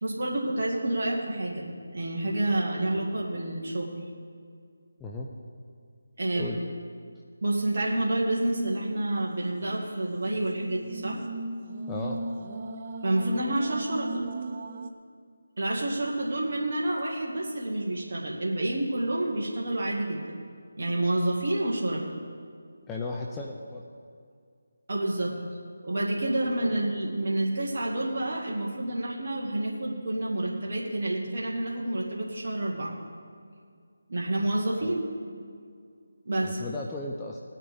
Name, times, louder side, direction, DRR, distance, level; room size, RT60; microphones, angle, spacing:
voice 1, 0.0-3.9 6.2-6.5 7.4-11.2 13.0-14.3 15.6-20.4 20.8-22.0 24.9-25.4 25.8-33.0 34.1-35.0 36.3-36.6, right 1 dB, 50° right, -3 dB, 2.0 m, -29 dB
sound 1, 8.8-14.9, right 2 dB, 35° right, 0.7 m, -38 dB
voice 2, 11.9-12.2 22.9-23.8 34.8-35.0 36.4-37.4, left 3 dB, 10° left, -2 dB, 0.6 m, -35 dB
19.0 x 9.7 x 3.6 m, 2.2 s
figure-of-eight pair, 160°, 0 cm